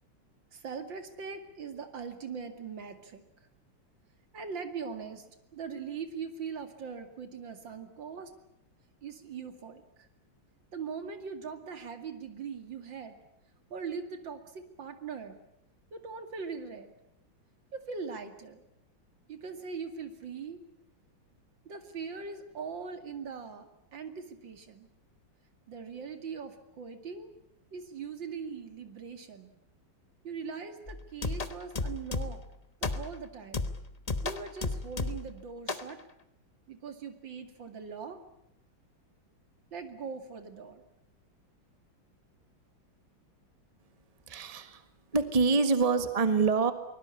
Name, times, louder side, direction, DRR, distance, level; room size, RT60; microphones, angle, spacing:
voice 1, 0.5-3.2 4.3-8.3 9.0-10.1 10.7-13.2 13.7-15.4 15.9-16.9 17.7-18.6 19.3-20.6 21.6-24.9 25.7-27.3 27.7-29.5 30.2-32.4 32.8-33.7 34.2-36.0 36.7-38.2 39.7-40.8, right 5 dB, 65° right, 8 dB, 3.0 m, -41 dB
sound 1, 30.9-32.5 32.8-33.2 33.5-35.3 35.7-35.9, left 3 dB, 25° left, 0.9 m, -34 dB
voice 2, 44.3-44.8 45.1-46.7, right 4 dB, 20° right, 10 dB, 1.5 m, -25 dB
23.5 x 22.0 x 8.5 m, 0.79 s
omnidirectional pair, 2.2 m